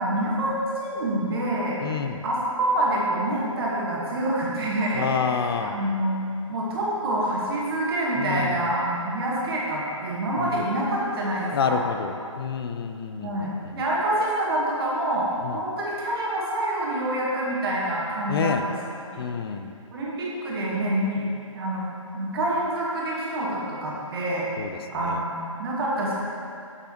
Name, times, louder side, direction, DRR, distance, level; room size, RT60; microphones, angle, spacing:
voice 1, 0.0-1.8 2.2-11.8 13.2-18.7 19.9-21.2 21.5-21.8 22.1-24.5 24.9-26.1, right 1 dB, 45° right, -5 dB, 1.4 m, -26 dB
voice 2, 1.8-2.2 4.9-5.8 8.2-8.6 10.4-10.6 11.5-13.8 15.4-15.6 18.3-18.6 19.2-19.7 24.6-24.7 25.0-25.2, left 6 dB, 45° left, 8 dB, 0.4 m, -28 dB
6.7 x 5.4 x 2.9 m, 2.5 s
figure-of-eight pair, 140°, 17 cm